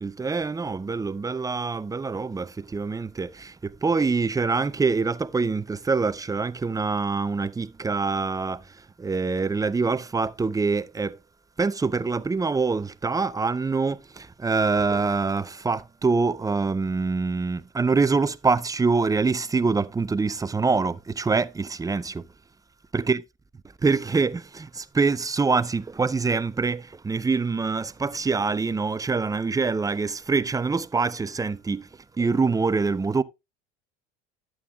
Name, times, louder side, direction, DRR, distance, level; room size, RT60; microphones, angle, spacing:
voice 1, 0.0-8.6 9.0-11.2 11.6-22.2 22.9-23.2 23.8-31.9 32.2-33.2, right 4 dB, 10° right, 0.4 m, -25 dB
11.0 x 8.7 x 2.3 m
hypercardioid pair, 75°, 34 cm